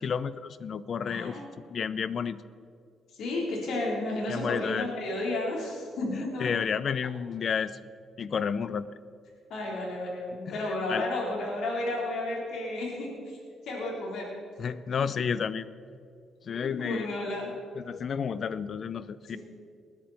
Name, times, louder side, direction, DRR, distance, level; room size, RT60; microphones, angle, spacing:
voice 1, 0.0-1.4 1.7-2.4 4.3-4.9 6.1-7.8 8.2-8.9 10.5-11.0 14.6-15.7 16.4-17.1 17.8-19.4, left 6 dB, 50° left, 16 dB, 0.6 m, -31 dB
voice 2, 1.1-1.4 3.2-6.5 9.5-13.4 13.7-14.3 14.6-14.7 16.5-17.5 19.3-19.4, left 2 dB, 75° left, -3 dB, 4.1 m, -32 dB
19.5 x 10.5 x 4.4 m, 2.3 s
cardioid pair, 90°, 0 cm